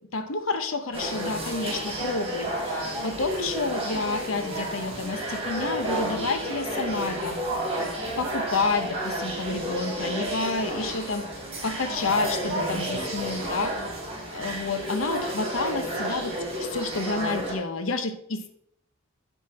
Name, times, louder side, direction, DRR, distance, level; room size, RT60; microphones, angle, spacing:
voice 1, 0.1-7.4 7.8-7.9 8.2-11.3 11.6-13.7 14.3-16.3 16.6-18.5, left 3 dB, 85° left, 9 dB, 0.9 m, -29 dB
sound 1, 0.9-17.5, right 1 dB, 30° right, 3.2 m, -31 dB
8.0 x 6.3 x 4.2 m, 0.70 s
head